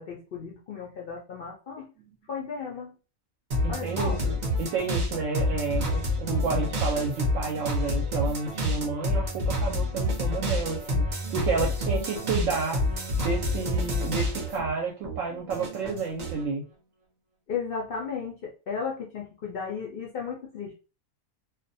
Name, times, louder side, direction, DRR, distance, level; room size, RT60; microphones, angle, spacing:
voice 1, 0.0-1.9 2.3-3.0 3.7-4.3 17.5-20.7, left 6 dB, 70° left, -2 dB, 0.5 m, -35 dB
sound 1, 3.5-14.7 15.0-16.4, left 1 dB, 45° right, 0.5 m, -28 dB
voice 2, 3.6-11.0 11.3-12.8 13.2-16.6, right 4 dB, 70° right, 0 dB, 0.9 m, -30 dB
2.4 x 2.1 x 2.5 m, 0.33 s
omnidirectional pair, 1.5 m